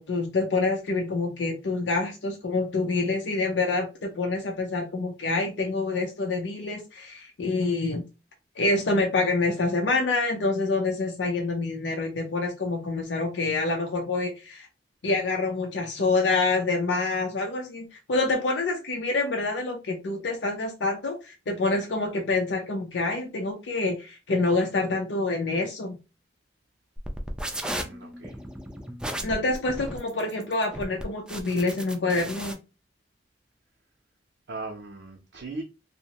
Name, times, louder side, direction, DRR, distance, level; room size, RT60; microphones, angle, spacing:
voice 1, 0.0-8.1 8.6-14.7 15.0-26.0 29.2-32.6, left 3 dB, 85° left, 0.6 m, -27 dB
sound 1, 27.0-32.5, right 1 dB, 5° right, 0.3 m, -35 dB
voice 2, 27.7-28.4 34.5-35.6, right 3 dB, 65° right, 0.6 m, -38 dB
2.6 x 2.1 x 2.8 m
head